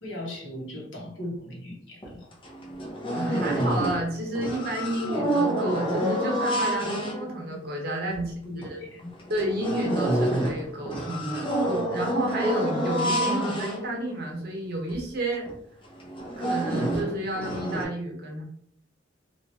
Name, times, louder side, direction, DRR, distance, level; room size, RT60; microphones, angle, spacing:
voice 1, 0.0-2.3 6.8-7.0 8.2-9.1, left 1 dB, 75° left, -2 dB, 1.0 m, -38 dB
sound 1, 2.0-2.1 2.4-4.1 4.3-7.6 8.1-8.2 8.6-8.7 9.2-14.4 14.9-15.0 15.3-15.5 16.0-17.8, right 1 dB, 30° left, 0.6 m, -28 dB
voice 2, 3.1-8.8 9.3-15.5 16.4-18.4, right 1 dB, 55° right, 0 dB, 0.9 m, -31 dB
2.9 x 2.4 x 2.8 m, 0.65 s
head